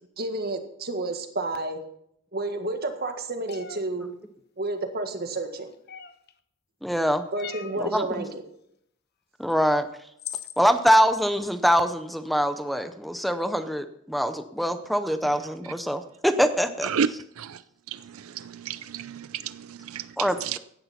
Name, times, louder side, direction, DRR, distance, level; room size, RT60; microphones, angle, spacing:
voice 1, 0.2-1.8 2.3-4.1 4.6-5.7 7.3-8.4, right 2 dB, 50° right, 1.7 m, -30 dB
sound 1, 3.5-3.8 5.9-6.3 7.4-7.8 9.5-9.6 10.2-10.6, left 9 dB, 50° left, 0.9 m, -38 dB
voice 2, 6.8-7.2 7.8-8.2 9.4-9.8 10.6-16.9 20.2-20.6, equal, ahead, 0.6 m, -24 dB
voice 3, 17.9-20.6, right 7 dB, 90° right, 0.5 m, -31 dB
16.5 x 11.0 x 4.3 m
head